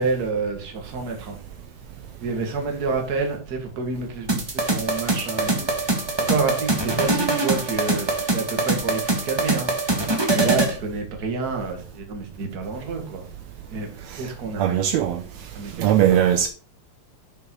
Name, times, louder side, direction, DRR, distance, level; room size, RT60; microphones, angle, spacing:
voice 1, 0.0-1.4 2.2-5.7 6.3-9.7 10.3-13.2 13.7-13.9 14.2-14.9 15.5-16.4, right 4 dB, 35° right, 2.0 m, -28 dB
sound 1, 4.3-10.8, right 2 dB, 15° right, 0.8 m, -23 dB
voice 2, 14.6-15.2 15.8-16.5, right 10 dB, 75° right, 2.0 m, -19 dB
7.1 x 6.8 x 4.6 m
omnidirectional pair, 3.3 m